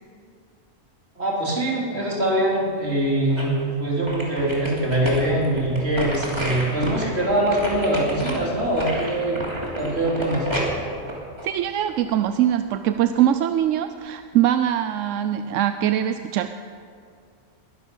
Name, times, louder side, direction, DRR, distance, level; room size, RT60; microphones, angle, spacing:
voice 1, 1.2-9.4 9.8-10.5, right 1 dB, 60° right, -4 dB, 3.8 m, -23 dB
sound 1, 2.8-3.6 4.1-12.1 12.6-12.7, equal, 20° right, 2.8 m, -31 dB
voice 2, 11.4-16.5, right 11 dB, 90° right, 9 dB, 0.9 m, -22 dB
21.0 x 11.5 x 5.5 m, 2.3 s
omnidirectional pair, 1.3 m